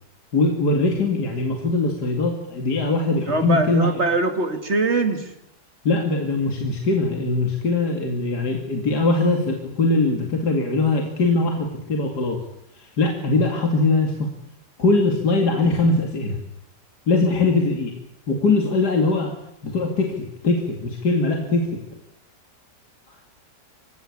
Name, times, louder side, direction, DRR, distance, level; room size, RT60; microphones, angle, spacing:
voice 1, 0.3-3.9 5.8-12.4 12.8-14.3 14.8-16.4 17.1-17.9 18.3-19.3 19.6-21.8, left 3 dB, 65° left, 2 dB, 3.0 m, -21 dB
voice 2, 3.3-5.3, right 2 dB, 40° right, 7 dB, 2.7 m, -22 dB
26.5 x 16.5 x 8.6 m, 0.80 s
omnidirectional pair, 1.9 m